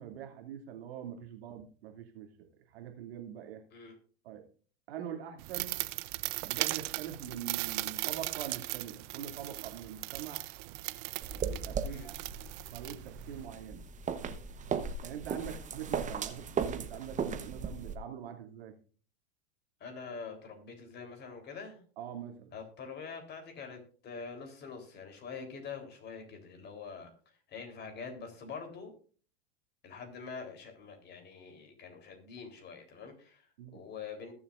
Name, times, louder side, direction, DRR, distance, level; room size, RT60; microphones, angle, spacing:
voice 1, 0.0-2.3 2.7-3.6 4.2-4.4 4.9-5.7 6.4-10.4 11.4-12.2 12.7-13.9 15.0-18.7 22.0-22.5 33.6-33.8, right 9 dB, 75° right, 4 dB, 2.8 m, -43 dB
sound 1, 5.4-13.5, right 22 dB, 50° right, 0.7 m, -38 dB
sound 2, 11.2-17.9, right 6 dB, 25° right, 1.1 m, -37 dB
voice 2, 19.8-21.8 22.5-28.9 29.8-34.3, left 5 dB, 35° left, 4 dB, 3.8 m, -45 dB
20.5 x 7.2 x 2.6 m, 0.41 s
hypercardioid pair, 110°, 31 cm